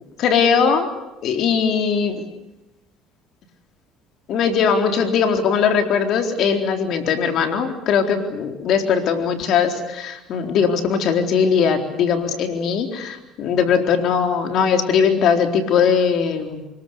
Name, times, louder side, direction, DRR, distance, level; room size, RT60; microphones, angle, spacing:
voice 1, 0.2-0.9 1.2-2.2 4.3-16.6, left 6 dB, 60° left, 6 dB, 4.0 m, -20 dB
25.5 x 22.0 x 8.3 m, 0.97 s
supercardioid pair, 80°, 0 cm